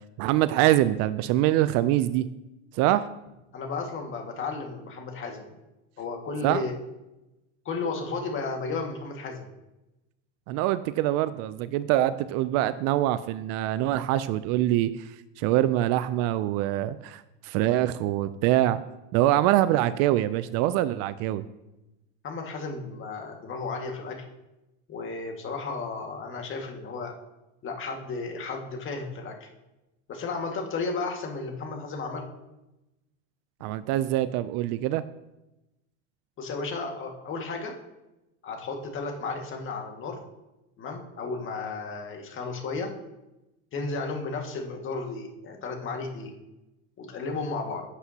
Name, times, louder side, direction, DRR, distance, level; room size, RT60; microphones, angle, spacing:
voice 1, 0.2-2.2 2.7-3.1 6.4-6.6 10.5-18.8 19.1-21.4 33.6-35.0, right 14 dB, 45° right, 14 dB, 0.4 m, -24 dB
voice 2, 3.5-5.5 6.0-6.7 7.7-9.5 22.2-24.2 24.9-27.1 27.6-29.5 30.1-32.3 36.4-37.7 38.4-40.2 40.8-42.9 43.7-46.3 47.0-47.9, left 4 dB, 35° left, 2 dB, 1.9 m, -33 dB
11.0 x 8.1 x 2.9 m, 0.97 s
supercardioid pair, 110°, 36 cm